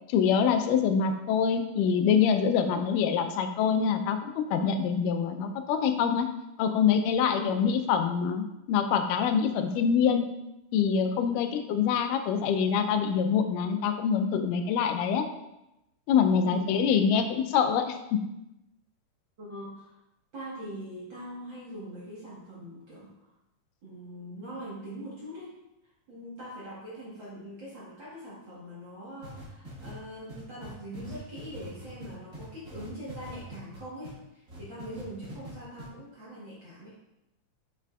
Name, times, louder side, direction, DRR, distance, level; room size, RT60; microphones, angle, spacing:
voice 1, 0.1-6.3 6.6-10.3 10.7-15.3 16.1-18.2, left 7 dB, 90° left, 7 dB, 2.2 m, -25 dB
voice 2, 7.3-7.7 11.3-11.5 16.4-16.7 19.4-20.0 20.3-23.3 23.8-25.6 26.1-36.9, equal, 50° right, -7 dB, 1.5 m, -42 dB
sound 1, 29.2-34.1 34.5-35.5 35.8-35.9, right 1 dB, 30° right, 1.7 m, -43 dB
7.5 x 5.8 x 2.3 m, 0.91 s
omnidirectional pair, 3.7 m